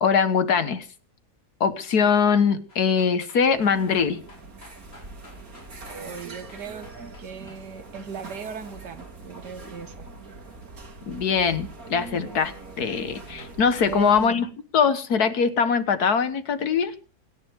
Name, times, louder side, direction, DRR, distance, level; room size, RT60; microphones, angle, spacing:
voice 1, 0.0-0.9 1.6-4.2 11.1-14.5 14.7-16.9, left 6 dB, 70° left, 11 dB, 1.8 m, -22 dB
sound 1, 2.7-7.6 13.0-13.1 13.4-13.9 14.2-14.3, left 2 dB, 90° left, 5.6 m, -51 dB
sound 2, 3.5-14.3, right 3 dB, 60° right, 3.0 m, -42 dB
voice 2, 5.9-6.9 7.2-10.1 13.8-14.4, right 7 dB, 85° right, 10 dB, 2.1 m, -37 dB
27.0 x 10.5 x 3.6 m, 0.36 s
omnidirectional pair, 1.7 m